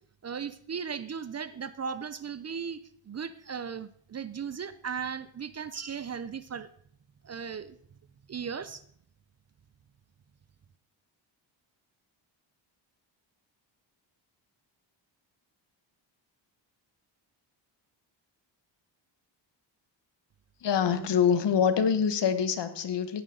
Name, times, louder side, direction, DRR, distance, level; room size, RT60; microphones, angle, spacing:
voice 1, 0.2-2.8 3.1-6.7 7.2-7.8 8.3-8.8 20.9-21.1, right 6 dB, 35° right, 15 dB, 0.5 m, -37 dB
voice 2, 20.6-23.2, left 7 dB, 60° left, 11 dB, 1.3 m, -25 dB
16.5 x 9.4 x 3.8 m, 0.63 s
cardioid pair, 115°, 46 cm